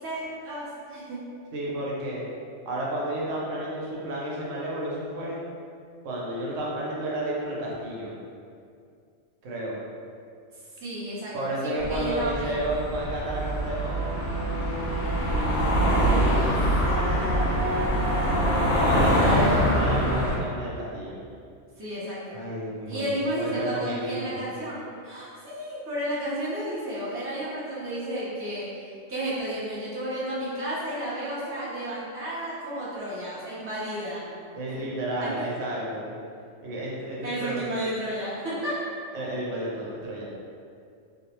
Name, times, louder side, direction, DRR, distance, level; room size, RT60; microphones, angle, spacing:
voice 1, 0.0-1.2 10.8-12.6 16.5-19.2 19.5-19.7 21.8-22.4 22.9-34.2 35.2-35.3 37.2-38.7, right 1 dB, 20° right, -9 dB, 0.4 m, -32 dB
voice 2, 1.5-2.2 2.7-5.4 6.0-8.1 9.4-9.8 11.3-16.2 16.8-21.2 22.3-24.5 34.5-36.1 36.6-37.6 39.1-40.2, right 1 dB, 90° right, -4 dB, 1.0 m, -32 dB
sound 1, 11.8-20.4, equal, 85° left, 0.9 m, -24 dB
2.5 x 2.0 x 2.8 m, 2.4 s
omnidirectional pair, 1.2 m